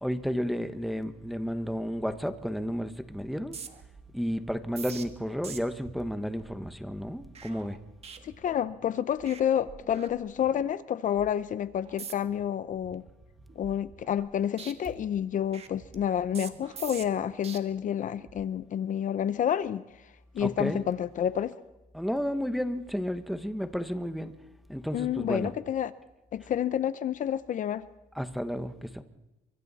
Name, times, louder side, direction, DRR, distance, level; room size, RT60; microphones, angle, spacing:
voice 1, 0.0-3.6 4.1-7.8 20.4-20.8 21.9-24.3 24.7-25.5 28.2-29.0, equal, ahead, 1.3 m, -32 dB
sound 1, 3.4-8.9 9.2-9.4 9.7-10.6 11.0-11.3 11.8-12.4 12.8-14.3 14.6-17.6 18.1-18.5, right 6 dB, 35° right, 1.8 m, -46 dB
voice 2, 8.2-13.0 13.6-19.8 20.3-21.5 24.9-25.9 26.3-27.8, left 9 dB, 50° left, 0.8 m, -29 dB
28.5 x 24.5 x 4.2 m
cardioid pair, 110°, 17 cm